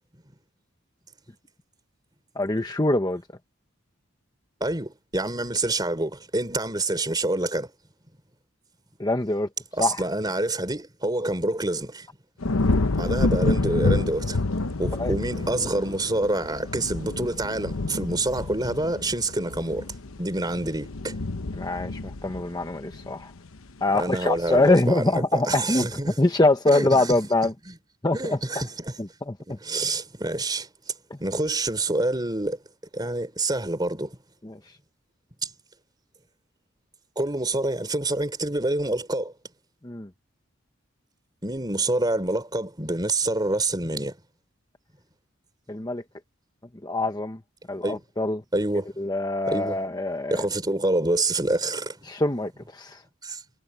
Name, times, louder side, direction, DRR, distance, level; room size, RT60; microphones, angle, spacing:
voice 1, 2.4-3.2 9.0-9.5 9.8-10.0 15.0-15.1 21.6-23.3 23.8-25.9 26.2-27.5 28.0-28.4 29.0-29.6 31.1-31.2 34.4-34.6 39.8-40.1 45.7-46.0 46.8-47.4 47.7-48.4 49.0-50.4 52.1-53.0, left 2 dB, 20° left, 1.0 m, -24 dB
voice 2, 4.6-7.7 9.7-12.1 12.9-14.4 14.8-19.9 20.2-21.2 23.9-26.2 26.7-27.2 27.7-27.8 28.1-29.0 29.5-30.7 31.2-32.6 32.9-34.2 35.4-35.5 37.2-39.3 41.4-44.2 47.8-48.0 48.5-48.9 49.5-49.8 50.3-52.0 53.2-53.4, right 2 dB, 20° right, 3.6 m, -27 dB
sound 1, 12.4-23.7 24.1-24.6, left 2 dB, 80° left, 1.0 m, -28 dB
head